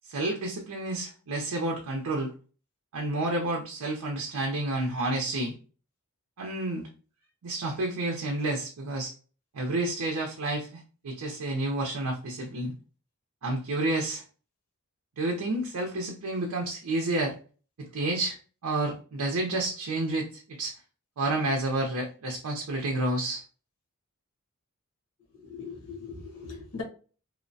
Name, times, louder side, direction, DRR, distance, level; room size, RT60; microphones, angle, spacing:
voice 1, 0.1-2.3 2.9-5.6 6.4-6.9 7.4-9.1 9.5-12.7 13.4-14.2 15.2-17.4 17.8-18.4 18.6-20.7 21.2-23.4, right 2 dB, 85° right, 1 dB, 0.5 m, -30 dB
voice 2, 25.5-26.8, left 5 dB, 85° left, 0 dB, 0.9 m, -39 dB
2.8 x 2.1 x 2.6 m, 0.38 s
head